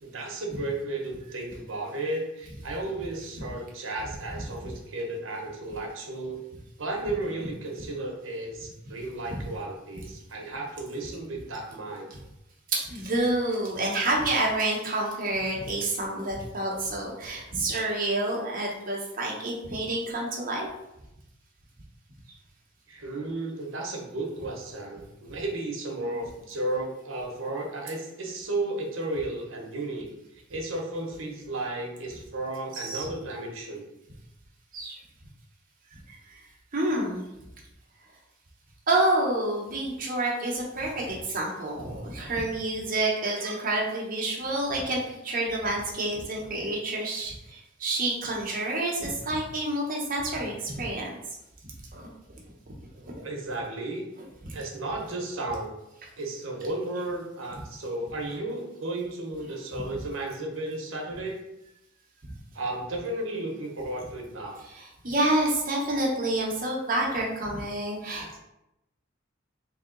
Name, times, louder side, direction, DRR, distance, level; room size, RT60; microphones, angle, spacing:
voice 1, 0.0-6.4 6.8-12.1 22.9-33.8 36.9-37.0 43.3-43.5 53.2-54.0 54.5-55.7 56.2-61.4 62.5-64.6, right 2 dB, 75° right, 1 dB, 0.9 m, -34 dB
voice 2, 12.7-20.7 32.8-33.1 34.7-34.9 36.1-36.2 36.7-37.2 38.9-51.1 51.9-52.1 54.4-54.5 64.8-68.4, right 2 dB, 45° right, -2 dB, 0.9 m, -28 dB
3.5 x 2.7 x 3.8 m, 0.89 s
head